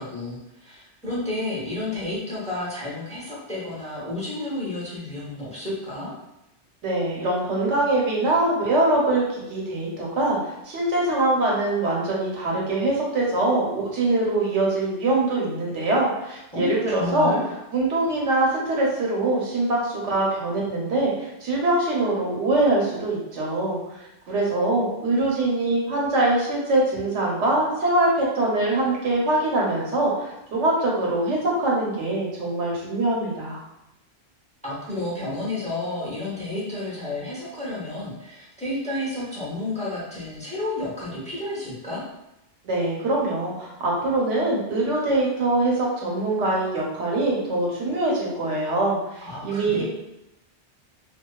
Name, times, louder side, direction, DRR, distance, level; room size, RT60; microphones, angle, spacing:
voice 1, 0.0-6.1 16.5-17.5 34.6-42.0 49.2-49.8, left 2 dB, 10° left, -8 dB, 0.6 m, -31 dB
voice 2, 6.8-10.4 10.6-17.4 17.7-24.0 24.3-33.6 42.6-49.8, right 2 dB, 80° right, -4 dB, 1.1 m, -23 dB
2.6 x 2.3 x 2.2 m, 0.89 s
omnidirectional pair, 1.2 m